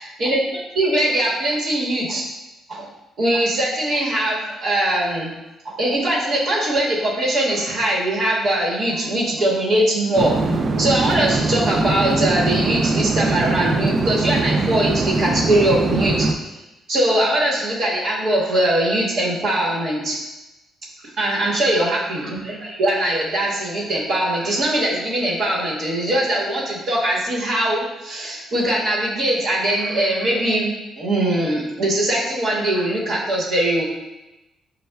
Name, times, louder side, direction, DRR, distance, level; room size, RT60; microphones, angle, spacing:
voice 1, 0.0-2.3 2.7-2.9 3.2-5.3 5.6-10.3 10.8-16.5 16.9-20.2 21.0-33.8, right 1 dB, 65° right, -5 dB, 1.1 m, -21 dB
sound 1, 10.2-16.3, right 3 dB, 40° right, 0.3 m, -21 dB
6.3 x 2.2 x 2.2 m, 1.0 s
cardioid pair, 90°, 0 cm